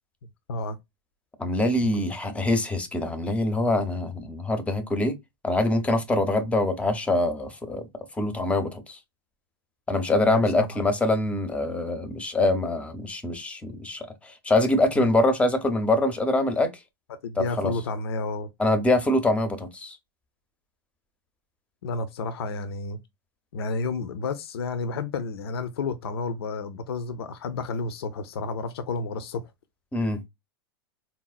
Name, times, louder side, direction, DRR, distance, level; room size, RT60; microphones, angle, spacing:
voice 1, 1.4-5.2 5.4-7.9 8.1-9.0 9.9-16.7 17.4-17.7 18.6-20.0 29.9-30.2, left 2 dB, 10° left, 0.5 m, -24 dB
voice 2, 10.3-10.8 15.0-15.1 17.1-18.5 21.8-23.0 23.5-29.5, left 4 dB, 80° left, 0.5 m, -31 dB
4.0 x 2.0 x 2.3 m
hypercardioid pair, 115°, 13 cm